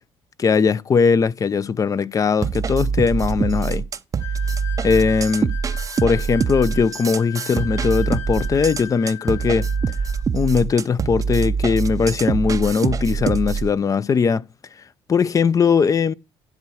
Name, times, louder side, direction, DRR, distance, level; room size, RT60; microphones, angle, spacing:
voice 1, 0.4-3.9 4.8-5.5 6.0-9.7 10.3-14.4 15.1-16.1, left 5 dB, 35° left, 0.5 m, -19 dB
sound 1, 2.4-13.7, right 5 dB, 35° right, 0.6 m, -24 dB
sound 2, 4.2-10.3, left 11 dB, 75° left, 5.2 m, -38 dB
10.5 x 4.6 x 6.2 m
cardioid pair, 90°, 10 cm